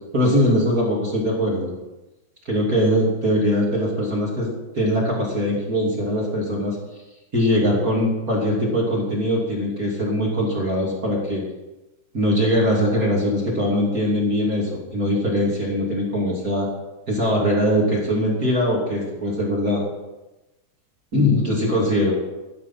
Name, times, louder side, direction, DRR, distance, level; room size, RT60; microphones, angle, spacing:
voice 1, 0.1-1.7 2.4-4.5 4.7-6.8 7.3-11.4 12.1-16.7 17.1-19.8 21.1-22.1, equal, 30° right, -4 dB, 1.9 m, -21 dB
12.5 x 10.5 x 5.6 m, 1.0 s
omnidirectional pair, 5.5 m